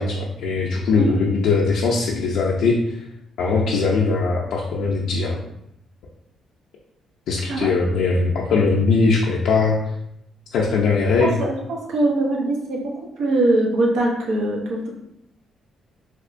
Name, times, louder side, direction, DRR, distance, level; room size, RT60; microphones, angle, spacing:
voice 1, 0.0-3.0 3.4-5.4 7.3-9.8 10.5-11.4, left 4 dB, 80° left, -3 dB, 0.4 m, -20 dB
voice 2, 11.2-12.9 13.2-14.9, right 2 dB, 85° right, -1 dB, 0.7 m, -22 dB
3.4 x 2.9 x 2.5 m, 0.80 s
cardioid pair, 90°, 0 cm